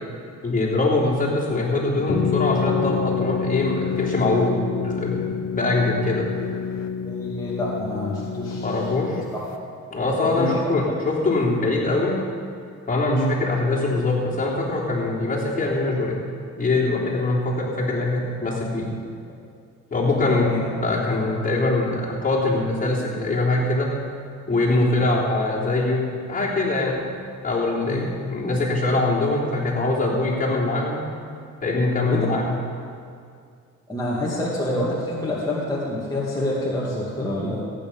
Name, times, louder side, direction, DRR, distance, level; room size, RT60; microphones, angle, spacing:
voice 1, 0.4-6.3 8.6-9.2 9.9-12.2 12.9-16.2 16.6-18.9 19.9-23.9 24.5-27.0 27.4-31.0 31.6-32.6, left 2 dB, 30° left, -5 dB, 3.4 m, -23 dB
sound 1, 2.1-9.6, left 7 dB, 65° left, 0.9 m, -27 dB
voice 2, 7.0-8.7 10.2-10.7 13.1-13.3 15.3-15.4 18.5-18.6 20.4-20.6 24.8-25.0 27.9-28.0 30.1-30.4 32.1-32.3 33.9-37.6, left 1 dB, 10° left, -7 dB, 2.5 m, -27 dB
15.0 x 9.3 x 5.6 m, 2.3 s
cardioid pair, 90°, 30 cm